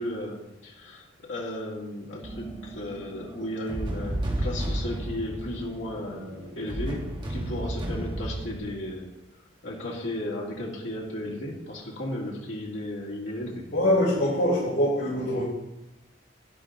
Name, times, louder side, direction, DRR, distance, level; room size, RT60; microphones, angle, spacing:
voice 1, 0.0-9.1 9.6-13.6, left 1 dB, 85° left, -3 dB, 2.4 m, -35 dB
sound 1, 2.2-8.6, right 1 dB, 25° right, 1.6 m, -33 dB
voice 2, 13.7-15.4, equal, 70° left, -9 dB, 4.4 m, -23 dB
11.5 x 10.5 x 3.8 m, 0.94 s
head